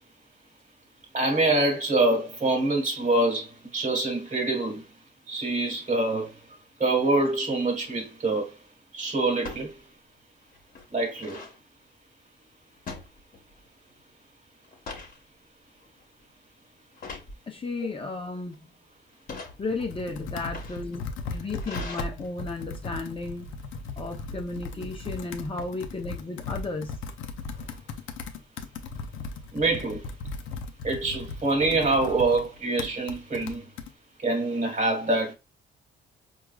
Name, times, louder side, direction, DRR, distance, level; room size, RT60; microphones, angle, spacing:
voice 1, 1.1-4.8 5.3-6.3 6.8-8.5 8.9-9.7 10.9-11.4 29.5-30.0 30.8-33.6 34.2-35.3, right 2 dB, 40° right, 1.4 m, -25 dB
sound 1, 7.6-8.0 9.4-9.7 10.2-10.3 10.5-11.6 12.9-13.7 14.0-14.2 14.6-15.2 15.7-16.0 17.0-17.3 18.1-18.5 19.1-19.5 20.3-22.0, left 4 dB, 45° left, 1.1 m, -41 dB
voice 2, 17.5-18.7 19.6-21.0 21.3-23.5 24.0-27.0, left 3 dB, 25° left, 0.6 m, -34 dB
Computer keyboard, 19.4-33.9, left 4 dB, 80° left, 0.5 m, -37 dB
4.6 x 2.4 x 2.3 m
cardioid pair, 90°, 20 cm